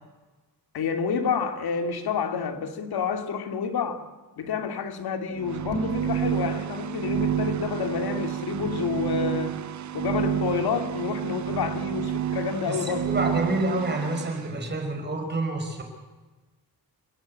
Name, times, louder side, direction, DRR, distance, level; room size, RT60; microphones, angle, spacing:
voice 1, 0.7-4.1 4.4-9.6 9.9-13.1, left 6 dB, 90° left, 2.5 m, -29 dB
sound 1, 5.3-14.4, right 11 dB, 50° right, 0.7 m, -30 dB
sound 2, 5.6-6.1, equal, 40° left, 3.9 m, -31 dB
voice 2, 12.7-15.8, right 2 dB, 30° right, 5.5 m, -28 dB
28.0 x 18.0 x 8.6 m
wide cardioid pair, 175°, 37 cm